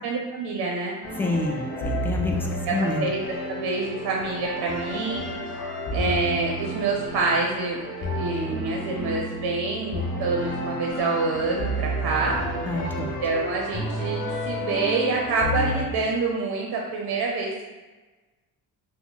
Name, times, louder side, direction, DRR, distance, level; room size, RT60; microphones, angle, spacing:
voice 1, 0.0-1.0 2.7-3.2 3.5-5.3 5.9-7.8 8.1-12.4 13.0-17.7, right 3 dB, 65° right, -1 dB, 0.7 m, -27 dB
sound 1, 1.0-15.8, equal, 50° left, 1.0 m, -31 dB
voice 2, 1.2-3.1 12.7-13.2, left 2 dB, 5° left, 0 dB, 0.5 m, -28 dB
3.4 x 2.1 x 3.9 m, 1.3 s
supercardioid pair, 60°, 40 cm